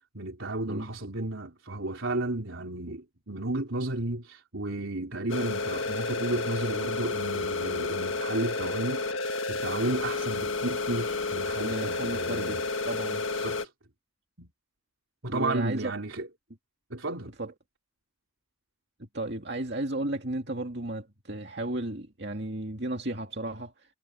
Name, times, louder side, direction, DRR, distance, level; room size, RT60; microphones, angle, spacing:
voice 1, 0.1-9.1 9.5-12.7 13.4-13.6 14.4-14.5 15.2-16.3 16.9-17.3, right 2 dB, 75° right, 3.5 m, -33 dB
sound 1, 5.3-13.6, left 3 dB, 75° left, 1.8 m, -31 dB
voice 2, 11.6-12.6 12.8-13.2 15.3-15.9 17.4-17.5 19.0-23.7, right 1 dB, 55° right, 2.4 m, -34 dB
head